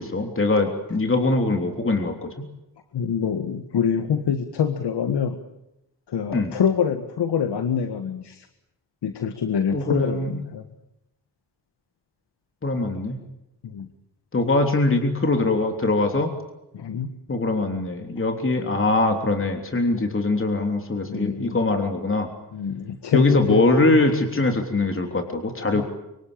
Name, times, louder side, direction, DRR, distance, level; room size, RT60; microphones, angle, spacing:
voice 1, 0.0-2.5 6.3-6.5 9.7-10.4 12.6-13.2 14.3-16.3 17.3-22.3 23.1-25.8, left 2 dB, 30° left, 4 dB, 3.4 m, -22 dB
voice 2, 2.9-5.4 6.1-8.5 9.0-10.6 13.6-13.9 16.7-17.1 19.9-20.2 21.1-21.6 22.5-24.0 25.7-25.8, left 7 dB, 80° left, 8 dB, 1.8 m, -25 dB
25.0 x 24.5 x 8.9 m, 0.90 s
cardioid pair, 75°, 40 cm